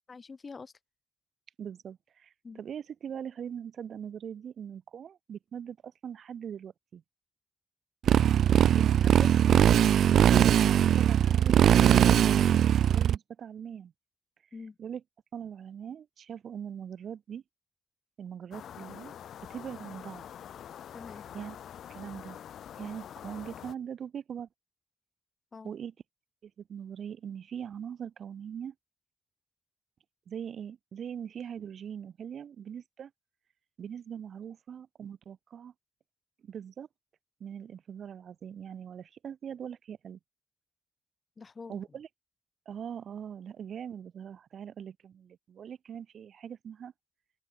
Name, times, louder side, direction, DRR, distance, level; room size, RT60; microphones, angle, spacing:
voice 1, 0.1-0.7 2.4-2.6 8.7-9.3 12.0-12.2 14.5-14.8 20.9-21.2 25.5-25.7 41.4-42.0, left 4 dB, 35° left, 4.9 m, -45 dB
voice 2, 1.6-7.0 8.5-9.0 9.5-11.9 12.2-12.5 12.9-13.9 14.8-15.0 15.3-17.4 18.2-19.1 19.5-20.2 21.3-21.6 21.9-22.4 22.8-24.5 25.6-25.9 26.4-28.7 30.3-33.1 33.8-35.7 36.4-36.9 37.4-40.2 41.7-42.1 42.7-46.9, right 8 dB, 65° right, 1.1 m, -41 dB
Motorcycle, 8.1-13.2, right 10 dB, 85° right, 0.4 m, -21 dB
sound 1, 18.5-23.7, left 9 dB, 85° left, 3.7 m, -45 dB
open air
wide cardioid pair, 125°, 0 cm